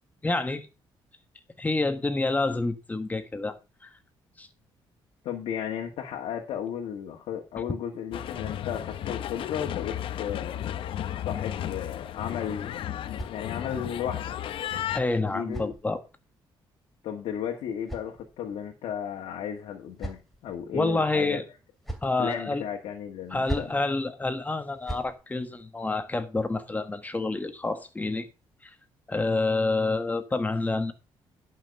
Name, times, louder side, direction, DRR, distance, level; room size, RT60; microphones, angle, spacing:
voice 1, 0.2-0.7 1.6-3.6 3.8-4.0 4.4-4.5 14.9-16.0 20.7-21.4 22.0-22.6 23.3-28.3 28.6-28.7 29.1-30.9, left 3 dB, 15° left, 1.4 m, -28 dB
voice 2, 5.2-10.7 11.0-12.8 13.1-14.5 15.2-15.7 17.0-21.4 22.2-23.7, left 9 dB, 85° left, 1.7 m, -34 dB
sound 1, 8.1-15.0, left 11 dB, 70° left, 0.8 m, -34 dB
sound 2, 12.8-13.9 14.9-16.4 17.3-18.7 19.5-20.6 21.5-22.2 23.2-23.9 24.6-25.2, right 1 dB, ahead, 2.6 m, -41 dB
11.0 x 5.8 x 5.4 m
cardioid pair, 110°, 9 cm